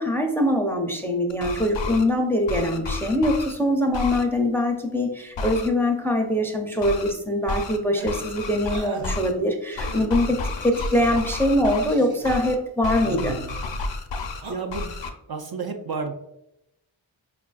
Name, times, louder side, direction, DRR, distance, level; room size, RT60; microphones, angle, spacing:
voice 1, 0.0-13.4, left 1 dB, 5° left, 2 dB, 0.4 m, -23 dB
sound 1, 1.3-2.0 2.5-3.5 3.9-4.2 5.4-5.7 6.8-7.1 7.5-7.8 8.1-9.3 9.8-11.9 12.2-12.5 12.8-14.4 14.7-15.1, left 3 dB, 65° left, 0.5 m, -31 dB
sound 2, 8.0-8.2 8.7-9.1 9.7-10.1 10.7-11.2 11.9-12.4 14.3-14.5, right 4 dB, 80° right, 0.8 m, -38 dB
voice 2, 13.0-13.6 14.5-14.9 15.3-16.1, right 4 dB, 50° right, 4 dB, 0.5 m, -31 dB
4.7 x 2.4 x 2.3 m, 0.84 s
wide cardioid pair, 45°, 50 cm